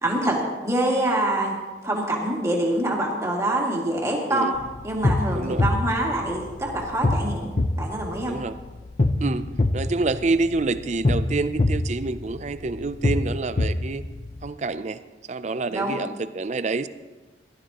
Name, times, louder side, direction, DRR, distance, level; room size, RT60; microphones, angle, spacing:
voice 1, 0.0-1.6 1.8-4.5 4.8-7.5 7.8-8.3 15.7-16.0, right 1 dB, 15° right, -2 dB, 2.2 m, -25 dB
sound 1, 4.5-14.5, left 2 dB, 40° left, 0.6 m, -26 dB
voice 2, 5.3-5.6 8.3-8.6 9.2-14.0 14.4-15.0 15.3-16.9, right 3 dB, 35° right, 13 dB, 0.5 m, -27 dB
17.5 x 12.5 x 3.0 m, 1.2 s
head